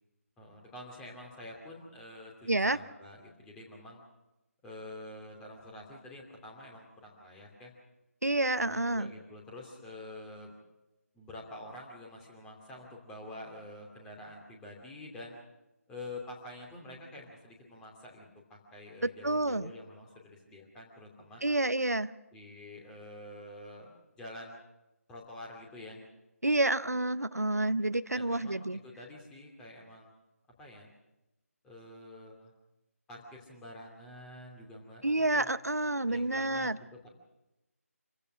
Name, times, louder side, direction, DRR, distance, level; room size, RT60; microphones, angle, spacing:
voice 1, 0.4-4.0 4.6-7.7 8.4-10.5 11.1-15.3 15.9-21.4 22.3-24.6 25.1-26.0 28.1-30.1 30.6-30.9 31.6-32.5 33.1-35.5 36.1-37.1, left 1 dB, 10° left, -1 dB, 2.7 m, -47 dB
voice 2, 2.5-2.8 8.2-9.1 19.2-19.7 21.4-22.1 26.4-28.8 35.0-36.8, right 2 dB, 85° right, 14 dB, 0.7 m, -29 dB
27.0 x 15.5 x 6.2 m, 0.95 s
figure-of-eight pair, 155°, 8 cm